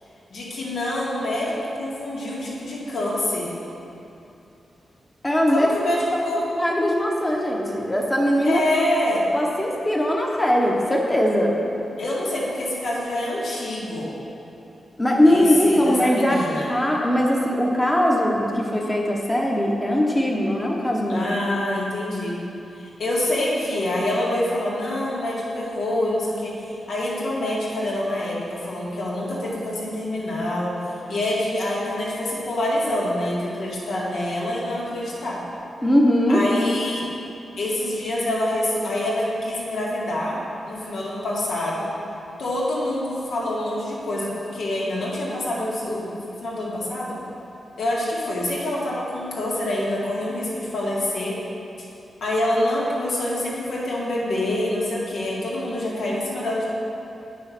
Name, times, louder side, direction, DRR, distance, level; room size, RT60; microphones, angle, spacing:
voice 1, 0.3-3.5 5.5-6.4 8.4-9.3 12.0-14.1 15.3-16.7 21.1-22.4 22.7-30.7 31.1-35.4 36.3-37.0 37.6-40.4 40.6-41.9 42.4-46.1 46.4-47.2 47.8-51.4 52.2-56.7, left 1 dB, 75° left, -5 dB, 2.2 m, -26 dB
voice 2, 5.2-5.7 6.6-8.7 9.3-11.5 15.0-16.4 16.7-21.3 35.8-36.4, equal, 10° left, -1 dB, 1.1 m, -20 dB
9.0 x 6.3 x 6.0 m, 2.8 s
wide cardioid pair, 165°, 0 cm